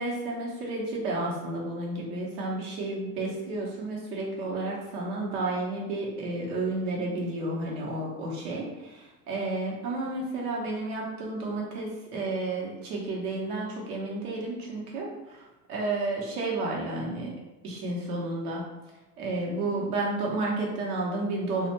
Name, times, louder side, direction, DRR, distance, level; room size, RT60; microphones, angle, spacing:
voice 1, 0.0-8.6 9.3-17.3 17.6-18.7 19.2-21.7, right 2 dB, 75° right, -3 dB, 1.0 m, -31 dB
2.4 x 2.1 x 2.9 m, 1.0 s
hypercardioid pair, 95°, 45 cm